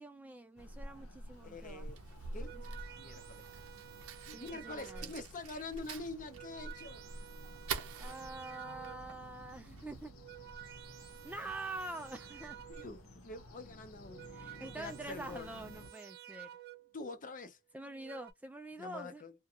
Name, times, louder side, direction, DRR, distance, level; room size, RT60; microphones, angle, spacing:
voice 1, 0.0-1.9 2.4-2.6 4.3-5.1 8.0-10.1 11.2-12.6 14.3-16.5 17.7-19.2, right 2 dB, 5° right, 0.3 m, -46 dB
sound 1, 0.6-15.9, equal, 70° left, 0.8 m, -51 dB
Fire, 1.3-10.1, right 7 dB, 85° right, 0.7 m, -48 dB
voice 2, 1.4-2.0 2.3-2.6 3.0-3.6 4.3-7.3 12.7-14.3 14.6-15.5 16.9-17.6 18.8-19.3, left 3 dB, 40° left, 0.6 m, -46 dB
sound 2, 2.2-5.3 6.1-9.2 10.0-13.1 13.9-17.0 17.8-18.3, right 13 dB, 50° right, 0.6 m, -52 dB
2.4 x 2.2 x 2.7 m
head